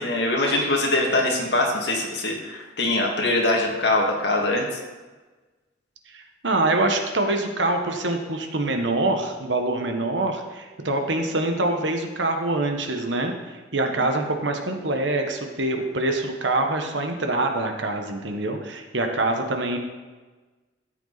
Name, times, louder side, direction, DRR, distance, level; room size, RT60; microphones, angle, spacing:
voice 1, 0.0-4.7 14.0-14.1, left 2 dB, 65° left, 0 dB, 2.1 m, -23 dB
voice 2, 6.1-19.8, right 2 dB, 75° right, 5 dB, 1.3 m, -25 dB
13.5 x 8.1 x 4.1 m, 1.3 s
head